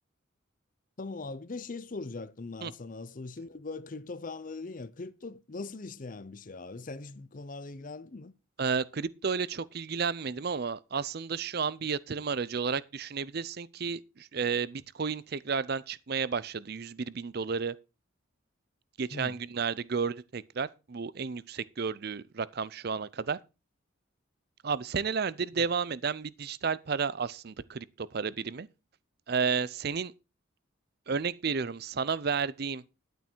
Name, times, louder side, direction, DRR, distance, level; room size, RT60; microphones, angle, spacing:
voice 1, 1.0-8.3 19.1-19.4 25.6-25.7, left 3 dB, 40° left, 0.6 m, -41 dB
voice 2, 8.6-17.7 19.0-23.4 24.6-28.7 29.3-30.1 31.1-32.8, right 5 dB, 50° right, 0.5 m, -32 dB
11.0 x 9.1 x 4.5 m
head